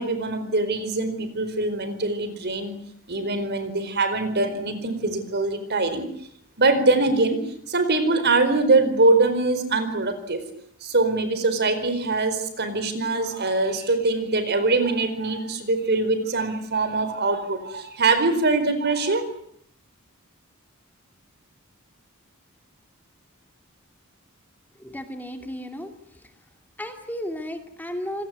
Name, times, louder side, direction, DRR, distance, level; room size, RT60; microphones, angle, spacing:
voice 1, 0.0-2.7 3.1-6.0 6.6-7.4 7.7-10.4 10.8-19.2, right 3 dB, 50° right, 11 dB, 4.6 m, -23 dB
voice 2, 24.8-25.9 26.8-28.3, equal, 10° left, 6 dB, 2.5 m, -33 dB
28.0 x 19.0 x 9.7 m, 0.68 s
head